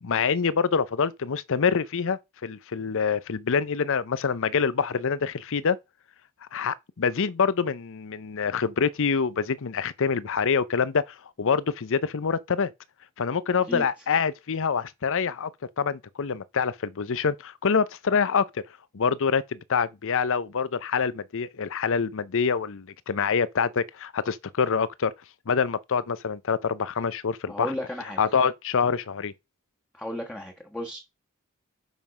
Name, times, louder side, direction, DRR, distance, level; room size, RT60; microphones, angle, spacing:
voice 1, 0.0-5.8 6.5-12.7 13.2-15.5 15.8-18.6 18.9-25.1 25.5-27.7 28.2-29.3, left 6 dB, 65° left, 0.6 m, -26 dB
voice 2, 27.5-28.2 29.9-31.0, left 1 dB, 5° left, 1.4 m, -34 dB
7.2 x 5.5 x 5.3 m
head